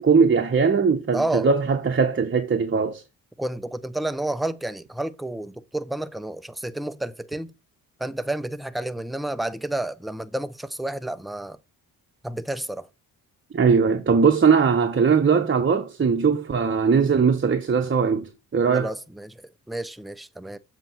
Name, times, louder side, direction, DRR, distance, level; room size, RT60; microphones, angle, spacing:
voice 1, 0.0-3.0 13.5-18.9, right 5 dB, 30° right, 0.8 m, -20 dB
voice 2, 1.1-1.5 3.4-7.5 8.0-11.6 12.2-12.9 18.7-20.6, right 1 dB, ahead, 0.4 m, -30 dB
7.5 x 2.9 x 5.7 m
cardioid pair, 65°, 41 cm